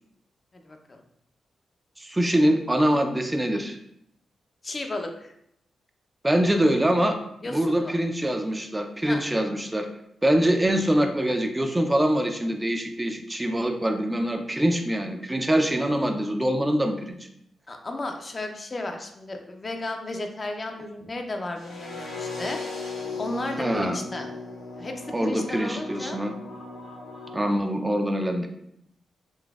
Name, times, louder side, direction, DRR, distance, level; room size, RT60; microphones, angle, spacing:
voice 1, 0.6-1.0 4.6-5.3 7.4-7.9 9.1-9.2 17.7-22.6 23.2-24.3 24.8-26.2, left 2 dB, 40° left, 4 dB, 0.6 m, -34 dB
voice 2, 2.0-3.8 6.2-7.2 7.5-9.9 10.2-17.2 23.6-24.0 25.1-26.3 27.3-28.5, right 1 dB, 20° right, 5 dB, 0.5 m, -24 dB
sound 1, 21.6-27.5, left 3 dB, 85° left, 1.0 m, -37 dB
3.9 x 2.5 x 2.4 m, 0.76 s
supercardioid pair, 45°, 0 cm